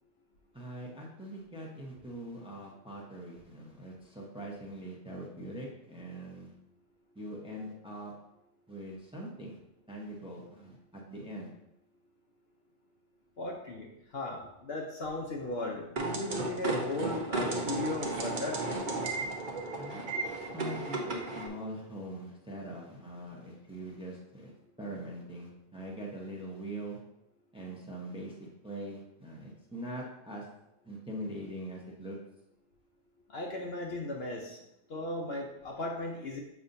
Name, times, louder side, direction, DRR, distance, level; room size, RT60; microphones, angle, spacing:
voice 1, 0.5-6.5 7.1-8.1 8.7-9.6 9.9-11.5 19.8-24.5 24.8-27.0 27.5-28.3 28.6-30.5 30.8-32.2, right 1 dB, 5° right, -2 dB, 0.8 m, -42 dB
voice 2, 13.4-13.9 14.1-18.6 33.3-34.6 34.9-36.4, left 2 dB, 55° left, 0 dB, 0.8 m, -36 dB
sound 1, 16.0-21.5, right 3 dB, 40° right, 0.9 m, -34 dB
7.1 x 5.4 x 2.6 m, 0.86 s
omnidirectional pair, 1.4 m